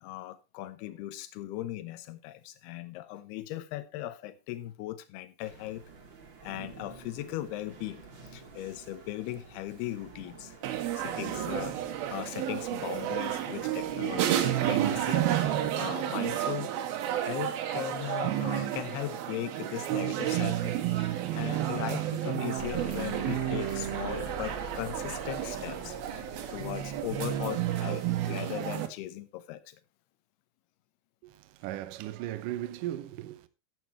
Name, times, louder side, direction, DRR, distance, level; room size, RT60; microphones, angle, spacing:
voice 1, 0.0-5.8 6.4-8.0 8.3-10.6 10.9-16.7 17.0-29.8, left 14 dB, 75° left, 2.7 m, -38 dB
sound 1, 5.4-15.7, right 5 dB, 45° right, 1.6 m, -46 dB
sound 2, 10.6-28.9, right 12 dB, 70° right, 2.7 m, -31 dB
sound 3, 22.6-27.5, equal, 40° left, 1.0 m, -42 dB
voice 2, 31.2-33.5, right 13 dB, 90° right, 1.8 m, -37 dB
11.5 x 8.0 x 4.3 m
omnidirectional pair, 5.0 m